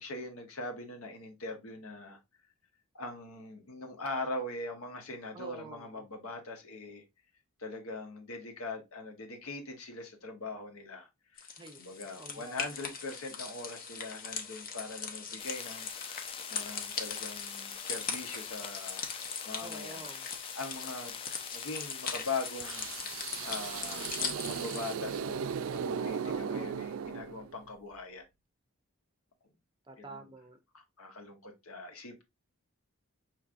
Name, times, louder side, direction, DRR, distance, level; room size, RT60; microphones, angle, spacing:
voice 1, 0.0-2.2 2.9-7.0 7.6-11.1 11.3-11.5 11.8-19.1 19.5-20.0 20.5-21.1 21.5-24.1 24.4-28.3 30.0-30.3 30.7-32.2, left 2 dB, 75° left, 1.1 m, -41 dB
voice 2, 5.3-5.9 11.6-11.8 12.2-12.6 19.6-20.3 26.3-26.6 29.9-30.6, right 3 dB, 20° right, 0.6 m, -47 dB
sound 1, 11.4-24.9, left 5 dB, 40° left, 0.8 m, -40 dB
sound 2, 15.4-24.2, left 7 dB, 25° left, 0.3 m, -44 dB
sound 3, 22.6-27.7, right 7 dB, 65° right, 0.3 m, -37 dB
5.8 x 3.1 x 2.5 m
head